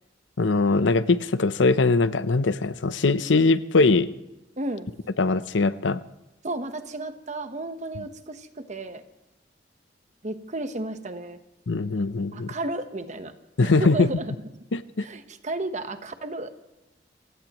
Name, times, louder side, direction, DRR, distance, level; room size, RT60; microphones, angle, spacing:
voice 1, 0.4-4.1 5.2-6.0 11.7-12.5 13.6-14.1 14.7-14.8, left 3 dB, 90° left, 14 dB, 0.7 m, -21 dB
voice 2, 4.6-4.9 6.4-9.0 10.2-11.4 12.3-14.3 15.0-16.5, right 2 dB, 40° right, 9 dB, 1.1 m, -33 dB
28.0 x 16.5 x 3.1 m, 0.98 s
head